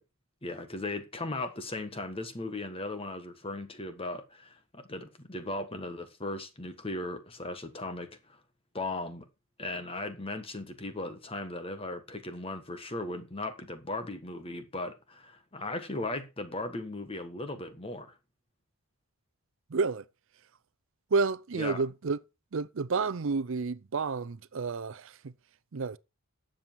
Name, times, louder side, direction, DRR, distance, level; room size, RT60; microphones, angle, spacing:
voice 1, 0.4-8.4 8.7-9.2 9.6-18.1 21.5-21.8, left 2 dB, 25° left, 1.5 m, -37 dB
voice 2, 19.7-20.1 21.1-22.2 22.5-25.3 25.7-26.0, right 4 dB, 60° right, 0.5 m, -30 dB
12.5 x 7.8 x 4.6 m
head